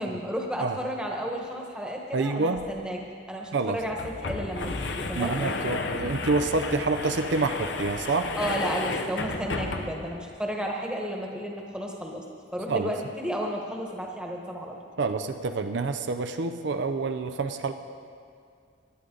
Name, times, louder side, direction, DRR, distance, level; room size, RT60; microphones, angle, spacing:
voice 1, 0.0-3.0 3.3-5.4 8.4-12.2 12.5-14.8, equal, 5° right, 0 dB, 1.2 m, -32 dB
voice 2, 2.1-2.6 3.5-3.8 5.2-8.3 12.7-12.9 15.0-17.7, right 3 dB, 65° right, 8 dB, 0.5 m, -27 dB
sound 1, 2.5-2.6 2.9-3.0 3.7-10.2, left 3 dB, 65° left, 0.8 m, -33 dB
18.0 x 11.5 x 3.9 m, 2.3 s
head